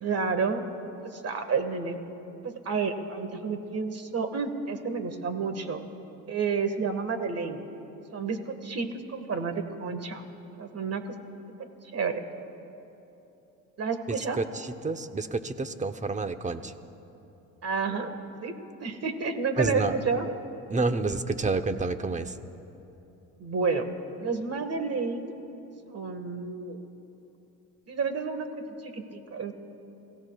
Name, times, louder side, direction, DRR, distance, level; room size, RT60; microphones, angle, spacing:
voice 1, 0.0-0.6 1.0-2.0 2.4-5.8 6.3-7.6 8.1-10.2 10.6-11.1 11.6-11.7 11.9-12.2 13.8-14.4 17.6-18.1 18.4-18.5 18.8-20.3 23.4-23.9 24.2-25.3 25.9-26.8 27.9-28.5 28.8-29.5, right 5 dB, 40° right, 8 dB, 1.6 m, -30 dB
voice 2, 14.1-16.7 19.6-20.0 20.7-22.3, right 3 dB, 20° right, 10 dB, 0.9 m, -29 dB
29.0 x 16.5 x 2.4 m, 3.0 s
supercardioid pair, 75°, 37 cm